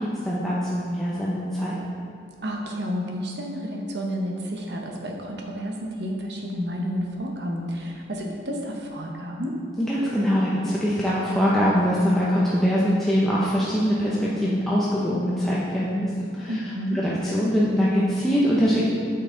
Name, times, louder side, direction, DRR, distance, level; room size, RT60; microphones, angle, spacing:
voice 1, 0.0-1.8 9.8-18.9, equal, ahead, -8 dB, 0.7 m, -23 dB
voice 2, 2.4-9.6 16.5-17.0, equal, 60° right, 1 dB, 1.0 m, -30 dB
8.8 x 5.9 x 3.9 m, 2.5 s
head